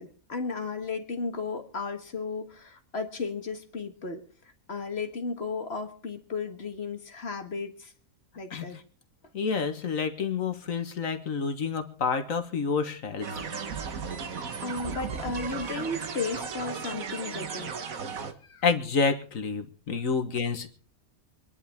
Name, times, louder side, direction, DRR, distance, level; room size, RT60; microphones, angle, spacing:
voice 1, 0.0-4.2 4.7-7.9 8.4-8.8 14.6-17.7, left 4 dB, 45° left, 6 dB, 1.7 m, -34 dB
voice 2, 9.3-13.4 18.6-20.7, left 5 dB, 65° left, 8 dB, 1.6 m, -28 dB
sound 1, 13.2-18.3, right 6 dB, 65° right, 1.7 m, -35 dB
25.5 x 10.5 x 3.5 m, 0.42 s
omnidirectional pair, 1.6 m